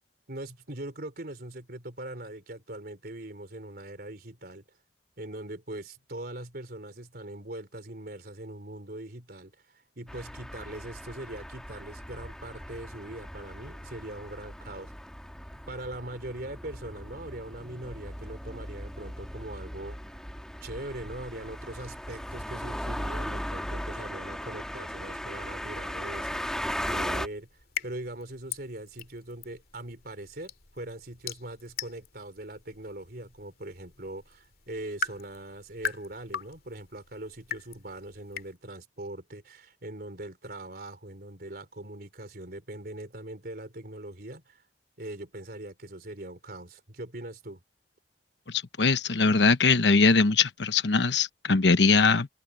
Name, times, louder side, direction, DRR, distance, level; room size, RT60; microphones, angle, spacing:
voice 1, 0.3-4.6 5.2-14.9 15.7-20.0 20.6-27.5 27.8-44.6 45.0-47.6, right 1 dB, 60° right, 3.9 m, -41 dB
sound 1, 10.1-27.3, equal, 5° left, 1.4 m, -38 dB
sound 2, 27.2-38.6, left 5 dB, 55° left, 2.5 m, -41 dB
voice 2, 48.5-52.3, left 4 dB, 85° left, 1.0 m, -22 dB
head